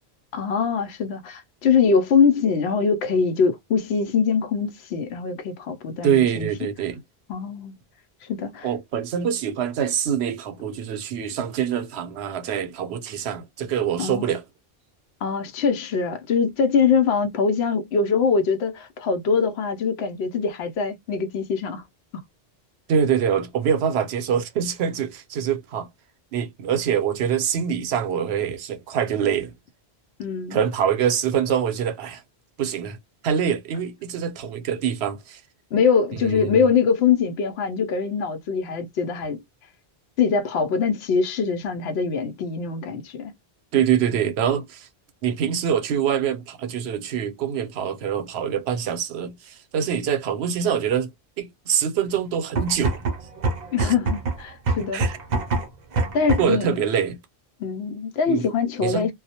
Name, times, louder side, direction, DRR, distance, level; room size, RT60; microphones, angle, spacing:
voice 1, 0.3-6.5 7.3-7.7 8.3-8.7 14.0-14.3 15.2-21.8 30.2-30.6 35.7-39.4 40.2-43.3 53.7-55.1 56.1-56.8 57.6-59.1, left 5 dB, 80° left, 0.8 m, -23 dB
voice 2, 6.0-7.0 8.6-14.4 22.9-25.9 26.3-29.5 30.5-32.2 32.6-33.0 33.2-35.4 36.1-36.7 43.7-44.9 45.2-51.1 51.4-53.0 53.8-53.9 54.9-55.2 56.4-57.2 58.3-58.4 58.8-59.1, right 8 dB, 80° right, 0.8 m, -24 dB
sound 1, 52.4-56.7, right 3 dB, 50° right, 0.6 m, -26 dB
2.2 x 2.0 x 2.7 m
omnidirectional pair, 1.1 m